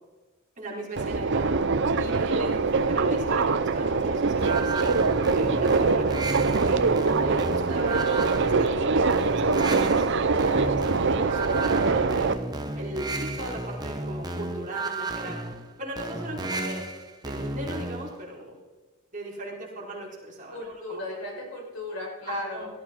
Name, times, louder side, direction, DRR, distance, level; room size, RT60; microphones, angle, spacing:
voice 1, 0.6-1.6 1.9-4.7 5.3-6.8 7.2-12.3 12.8-15.4 15.8-16.9 17.2-18.6 19.1-21.0 22.2-22.7, right 1 dB, 35° right, -4 dB, 4.4 m, -38 dB
Subway metro underground, 1.0-12.3, right 4 dB, 55° right, 0.7 m, -23 dB
sound 1, 4.4-18.2, right 2 dB, 20° right, 1.2 m, -33 dB
voice 2, 20.5-22.7, left 1 dB, 85° left, -2 dB, 6.3 m, -35 dB
17.5 x 13.0 x 4.5 m, 1.2 s
head